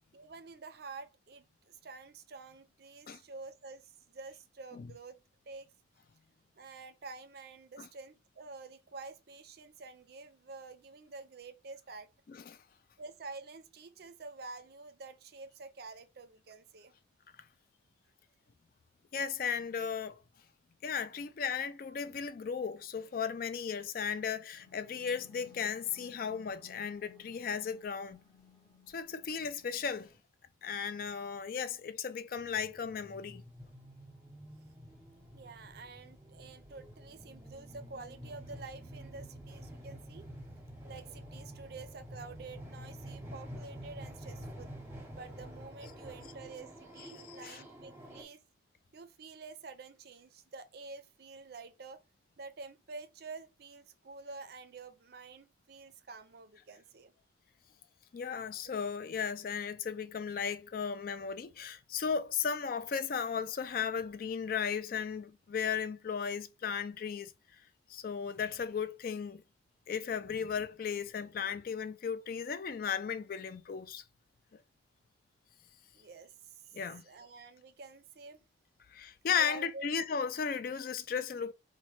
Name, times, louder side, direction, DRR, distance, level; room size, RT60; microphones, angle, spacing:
voice 1, 0.1-5.2 5.5-5.7 6.6-12.1 13.0-16.9 35.3-40.3 40.8-44.7 45.1-48.4 48.9-52.0 52.4-57.1 75.9-78.4 79.4-79.9, right 3 dB, 55° right, 0.5 m, -49 dB
voice 2, 19.1-20.2 20.8-28.2 28.9-30.1 30.6-33.4 47.4-47.6 58.1-67.3 67.9-69.4 69.9-74.0 76.7-77.0 78.9-81.5, left 6 dB, 45° left, 0.3 m, -35 dB
sound 1, 24.5-30.2, left 5 dB, 20° left, 0.8 m, -60 dB
sound 2, 32.4-48.2, equal, 15° right, 0.8 m, -48 dB
4.1 x 2.1 x 3.1 m
head